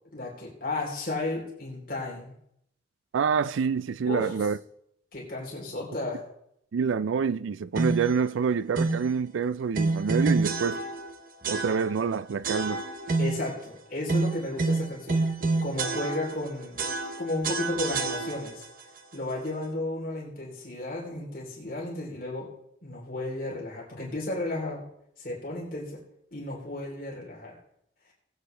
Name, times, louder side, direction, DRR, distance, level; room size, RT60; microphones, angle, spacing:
voice 1, 0.1-2.3 4.1-4.4 5.1-6.2 13.2-15.2 15.6-16.8 17.2-18.6 19.1-22.5 22.8-24.8 25.2-26.0 26.3-27.6, left 2 dB, 45° left, 3.5 m, -33 dB
voice 2, 3.1-4.6 6.7-10.8 11.5-12.8, right 6 dB, 90° right, 0.4 m, -27 dB
sound 1, 7.7-8.2 8.7-9.1 9.7-11.1 11.4-12.1 12.4-13.5 14.1-16.5 16.8-18.7, right 3 dB, 45° right, 0.8 m, -28 dB
19.5 x 8.2 x 3.3 m
head